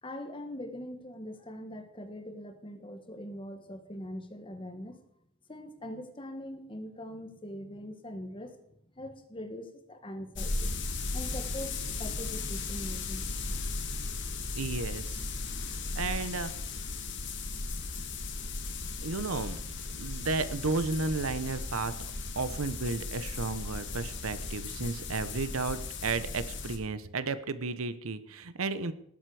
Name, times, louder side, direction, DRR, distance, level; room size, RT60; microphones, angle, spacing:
voice 1, 0.0-5.0 5.5-8.7 9.0-10.7 11.1-13.3 13.8-14.0, left 1 dB, 25° left, 7 dB, 1.4 m, -42 dB
sound 1, 10.3-26.8, left 3 dB, 55° left, 1.8 m, -36 dB
voice 2, 14.6-15.3 15.7-16.5 19.0-19.6 20.0-21.9 22.4-28.9, right 3 dB, 80° right, 13 dB, 0.9 m, -33 dB
19.0 x 7.8 x 4.9 m, 0.75 s
head